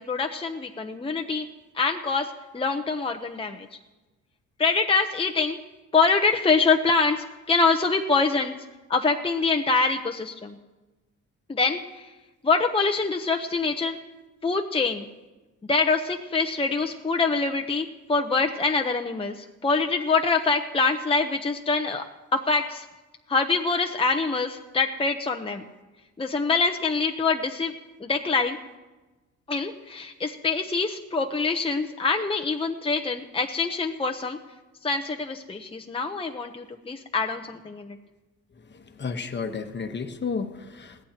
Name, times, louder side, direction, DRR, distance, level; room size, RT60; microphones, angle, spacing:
voice 1, 0.0-1.4 1.7-3.7 4.6-5.6 5.9-8.5 8.9-10.6 11.5-12.1 12.4-14.0 14.4-15.0 15.7-22.0 22.3-22.8 23.3-25.6 26.2-27.7 28.0-28.6 29.5-34.4 34.8-38.0, left 4 dB, 20° left, 4 dB, 0.8 m, -25 dB
voice 2, 39.0-41.0, left 5 dB, 35° left, 7 dB, 1.2 m, -32 dB
21.0 x 15.5 x 2.9 m, 1.1 s
cardioid pair, 90°, 30 cm